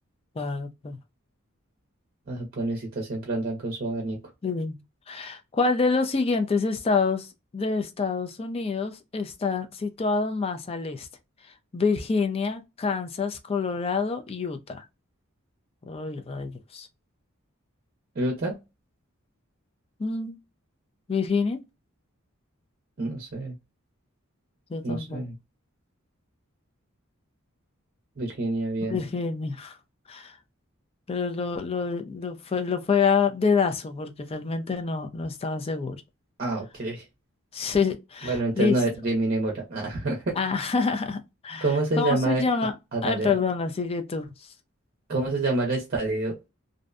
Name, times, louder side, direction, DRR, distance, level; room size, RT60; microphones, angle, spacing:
voice 1, 0.4-1.0 4.4-4.8 5.1-11.1 11.7-14.9 15.9-16.9 20.0-20.4 21.1-21.6 24.7-25.2 28.9-29.8 30.1-30.4 31.1-36.0 37.5-38.8 40.4-41.7 42.0-42.7 43.0-44.3, left 4 dB, 30° left, 0.4 m, -27 dB
voice 2, 2.3-4.2 18.2-18.6 23.0-23.5 24.8-25.3 28.2-29.0 36.4-37.0 38.2-40.3 41.6-42.4 42.9-43.3 45.1-46.5, right 2 dB, 45° right, 0.6 m, -27 dB
2.6 x 2.1 x 2.4 m
head